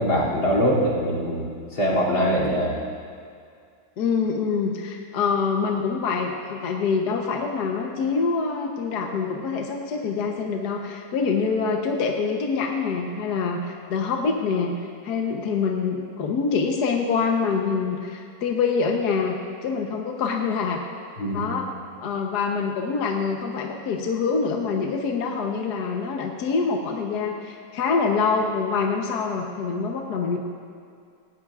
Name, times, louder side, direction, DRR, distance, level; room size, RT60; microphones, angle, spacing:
voice 1, 0.0-2.8 21.2-21.5, equal, 80° left, -5 dB, 3.6 m, -23 dB
voice 2, 4.0-19.4 19.6-20.8 21.3-21.7 22.0-30.4, left 5 dB, 60° left, 1 dB, 1.4 m, -25 dB
18.0 x 18.0 x 2.4 m, 2.3 s
omnidirectional pair, 2.1 m